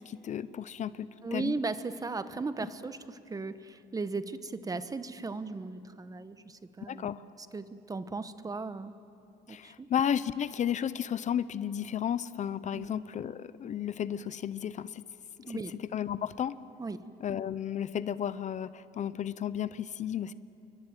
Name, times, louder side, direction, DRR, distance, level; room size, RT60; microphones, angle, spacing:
voice 1, 0.0-1.5 6.9-7.2 9.5-15.0 15.4-16.6 17.2-20.3, left 9 dB, 45° left, 16 dB, 0.7 m, -33 dB
voice 2, 1.2-7.1 7.5-8.9 9.5-9.9 12.7-13.0 15.4-15.7 16.8-17.0, right 3 dB, 20° right, 12 dB, 1.2 m, -37 dB
28.5 x 23.0 x 9.0 m, 2.7 s
cardioid pair, 110°, 17 cm